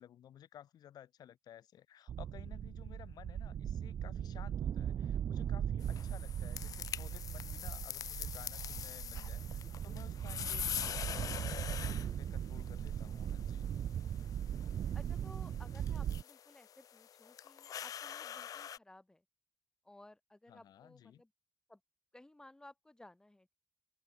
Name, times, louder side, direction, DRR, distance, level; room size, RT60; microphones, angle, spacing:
voice 1, 0.0-13.7 20.5-21.2, left 10 dB, 85° left, 6.9 m, -56 dB
sound 1, 2.1-16.2, right 9 dB, 70° right, 0.9 m, -39 dB
sound 2, 5.8-18.8, left 9 dB, 65° left, 0.4 m, -44 dB
voice 2, 9.6-10.0 14.9-19.2 19.8-21.3 21.7-21.8 22.1-23.5, left 1 dB, 10° left, 3.3 m, -58 dB
open air
cardioid pair, 120°, 7 cm